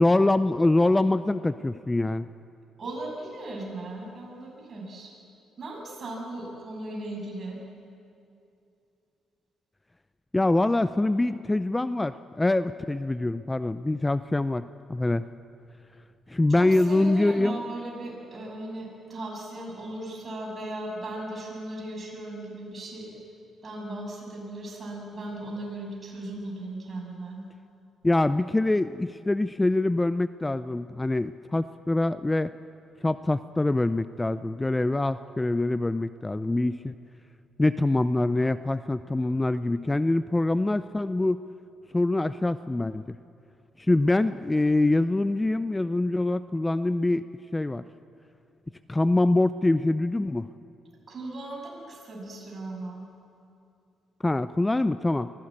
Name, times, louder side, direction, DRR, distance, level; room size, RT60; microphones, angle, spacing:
voice 1, 0.0-2.3 10.3-15.2 16.3-17.6 28.0-32.5 33.0-36.9 37.6-41.4 41.9-43.2 43.8-47.2 47.5-47.8 48.9-50.5 54.2-55.3, left 2 dB, 15° left, 13 dB, 0.4 m, -24 dB
voice 2, 2.8-5.1 5.6-7.6 16.5-23.1 23.6-27.4 51.1-53.0, right 2 dB, 40° right, -1 dB, 7.1 m, -37 dB
23.0 x 16.0 x 8.8 m, 2.6 s
cardioid pair, 90°, 0 cm